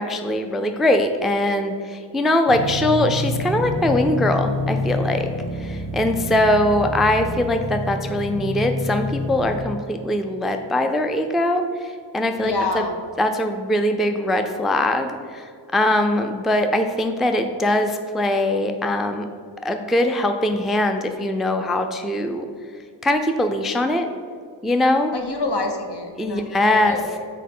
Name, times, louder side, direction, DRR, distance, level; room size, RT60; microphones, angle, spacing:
voice 1, 0.0-5.3 5.6-12.8 13.2-19.3 19.6-22.5 23.0-24.1 24.6-25.1 26.2-27.0, left 1 dB, ahead, 6 dB, 0.4 m, -21 dB
sound 1, 2.5-9.6, left 1 dB, 45° left, 1.6 m, -27 dB
voice 2, 12.4-13.0 25.1-27.2, left 3 dB, 60° left, 3 dB, 1.1 m, -27 dB
6.4 x 4.6 x 5.4 m, 2.1 s
wide cardioid pair, 65°, 44 cm